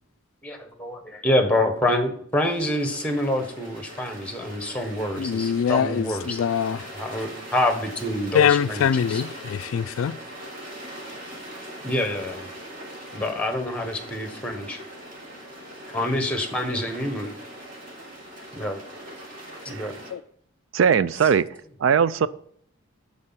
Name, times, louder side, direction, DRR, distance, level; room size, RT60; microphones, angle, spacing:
voice 1, 0.4-6.4 6.7-9.2 11.8-12.5 13.1-14.8 15.9-17.3 18.5-18.8 19.6-19.9, left 1 dB, 5° left, 1.1 m, -26 dB
sound 1, 2.4-20.1, right 1 dB, 40° right, 3.2 m, -41 dB
voice 2, 5.2-6.8 8.3-10.2 20.1-20.2, left 8 dB, 75° left, 0.3 m, -23 dB
voice 3, 20.7-21.5 21.8-22.3, right 7 dB, 65° right, 0.3 m, -20 dB
11.0 x 4.2 x 5.7 m
head